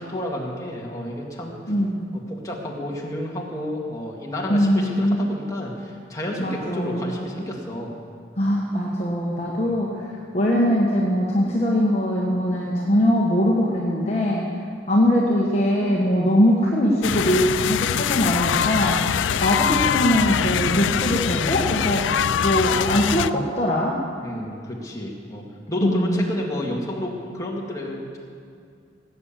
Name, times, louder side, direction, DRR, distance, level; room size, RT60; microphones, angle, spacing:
voice 1, 0.0-1.6 2.1-8.0 9.6-9.7 24.2-28.2, left 1 dB, 20° left, -3 dB, 2.1 m, -31 dB
voice 2, 1.7-2.0 4.5-5.2 6.4-7.2 8.4-9.9 10.3-14.4 14.9-19.0 19.4-22.0 22.4-24.0 25.8-26.3, equal, 35° left, -3 dB, 1.4 m, -21 dB
sound 1, 17.0-23.3, left 8 dB, 85° left, 0.4 m, -23 dB
18.5 x 8.9 x 7.5 m, 2.3 s
head